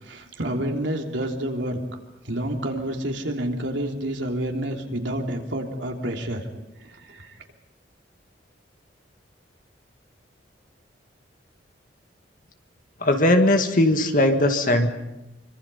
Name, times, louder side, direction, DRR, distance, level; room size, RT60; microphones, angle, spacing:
voice 1, 0.0-1.8 2.2-6.4 6.8-7.4, right 1 dB, 75° right, 2 dB, 3.2 m, -29 dB
voice 2, 13.0-14.9, left 1 dB, 45° left, 5 dB, 1.9 m, -19 dB
26.0 x 24.5 x 5.6 m, 0.98 s
head